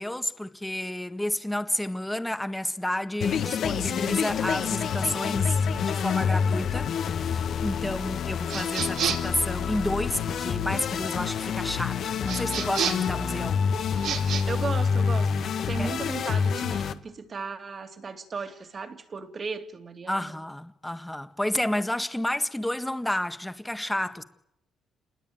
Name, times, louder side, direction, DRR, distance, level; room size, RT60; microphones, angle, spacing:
voice 1, 0.0-13.6 15.8-15.9 20.1-24.2, left 1 dB, 5° left, 1.8 m, -30 dB
sound 1, 3.2-16.9, left 6 dB, 60° left, 1.7 m, -27 dB
sound 2, 8.5-9.4 12.3-13.1 13.9-14.4, right 8 dB, 75° right, 3.9 m, -30 dB
voice 2, 14.5-20.4, right 5 dB, 40° right, 2.9 m, -36 dB
28.0 x 21.0 x 9.3 m
cardioid pair, 85°, 0 cm